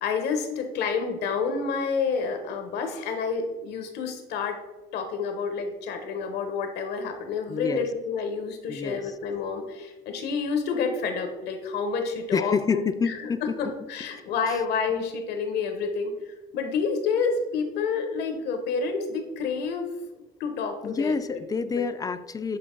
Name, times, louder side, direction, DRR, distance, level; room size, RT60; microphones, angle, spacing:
voice 1, 0.0-4.6 4.9-13.1 13.4-19.9 20.4-21.4, left 5 dB, 80° left, 6 dB, 1.1 m, -29 dB
voice 2, 7.5-7.9 8.7-9.1 12.3-13.6 20.8-22.6, left 5 dB, 20° left, 12 dB, 0.3 m, -28 dB
7.7 x 3.8 x 3.8 m, 1.1 s
cardioid pair, 110°, 17 cm